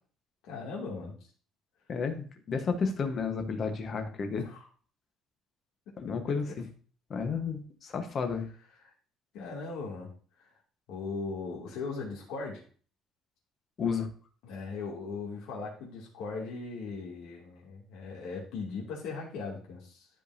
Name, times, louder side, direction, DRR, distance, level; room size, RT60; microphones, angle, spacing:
voice 1, 0.4-1.1 4.3-4.7 8.8-8.9 9.3-10.1 10.4-10.5 10.9-12.6 14.4-20.1, left 4 dB, 85° left, -3 dB, 2.4 m, -38 dB
voice 2, 1.9-4.5 6.0-6.7 7.1-8.5 13.8-14.1, left 5 dB, 35° left, 6 dB, 1.2 m, -32 dB
13.0 x 5.2 x 2.7 m, 0.41 s
cardioid pair, 160°, 0 cm